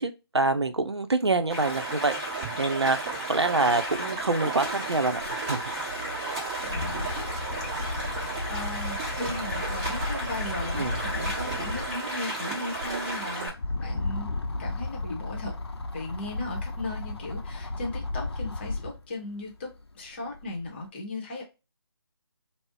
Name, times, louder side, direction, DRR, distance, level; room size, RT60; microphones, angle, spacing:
voice 1, 0.0-2.1 2.6-5.6 10.7-11.0, right 3 dB, 85° right, 0.5 m, -26 dB
Stream, 1.5-13.5, right 2 dB, 20° right, 1.0 m, -33 dB
sound 1, 3.9-4.0 4.2-12.0 12.5-19.0 19.5-20.7, left 2 dB, 75° left, 0.5 m, -34 dB
voice 2, 6.6-7.1 8.5-13.5 13.8-15.6 15.9-21.4, left 2 dB, 25° left, 0.8 m, -37 dB
2.4 x 2.0 x 3.7 m
figure-of-eight pair, 150°, 13 cm